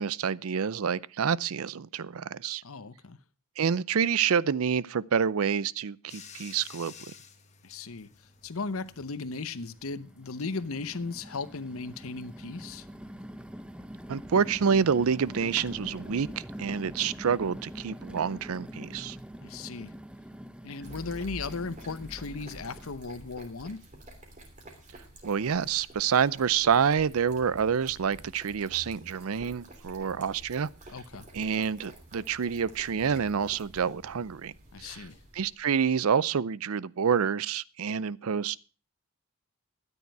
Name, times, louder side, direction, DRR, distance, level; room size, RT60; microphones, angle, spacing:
voice 1, 0.0-2.6 3.6-6.9 14.1-19.2 25.2-30.7 31.3-34.5 34.8-35.1 35.3-38.6, right 7 dB, 80° right, 0.5 m, -28 dB
voice 2, 2.6-3.2 7.6-8.1 8.4-12.9 19.4-19.9 20.6-23.8 30.9-31.3 34.7-35.2, left 4 dB, 75° left, 0.9 m, -36 dB
Bathtub (filling or washing), 6.1-17.3, left 6 dB, 35° left, 1.4 m, -55 dB
sound 1, 7.9-8.0 8.4-9.1 9.7-22.9, equal, 5° right, 0.6 m, -44 dB
sound 2, 20.8-35.6, right 1 dB, 35° right, 3.1 m, -49 dB
13.5 x 10.0 x 4.6 m
head